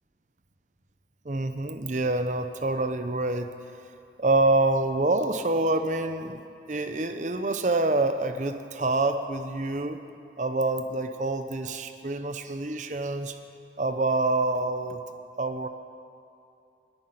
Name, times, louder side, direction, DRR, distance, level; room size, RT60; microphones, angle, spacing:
voice 1, 1.2-3.5 4.2-6.4 6.7-10.0 10.4-13.4 13.8-15.0 15.4-15.7, right 2 dB, 45° right, 8 dB, 0.7 m, -26 dB
10.5 x 10.0 x 9.5 m, 2.5 s
head